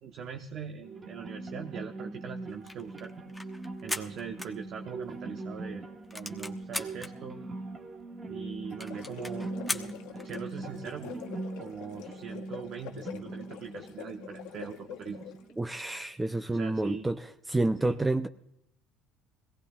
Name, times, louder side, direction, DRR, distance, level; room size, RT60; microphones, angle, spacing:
voice 1, 0.0-3.1 3.8-5.8 6.1-7.4 8.3-11.2 11.6-15.3 16.4-17.1 17.8-18.0, right 7 dB, 55° right, 5 dB, 0.9 m, -41 dB
sound 1, 0.8-15.8, right 2 dB, 30° right, 1.3 m, -42 dB
sound 2, 2.5-5.2 5.5-5.6 5.9-7.1 7.7-7.8 8.0-8.1 8.4-8.5 8.8-10.5, left 2 dB, 5° left, 1.0 m, -38 dB
sound 3, 8.7-15.5, left 12 dB, 70° left, 0.9 m, -46 dB
voice 2, 15.6-17.2 17.5-18.3, right 2 dB, 15° right, 9 dB, 0.5 m, -28 dB
21.5 x 17.0 x 2.4 m, 0.78 s
supercardioid pair, 80°, 0 cm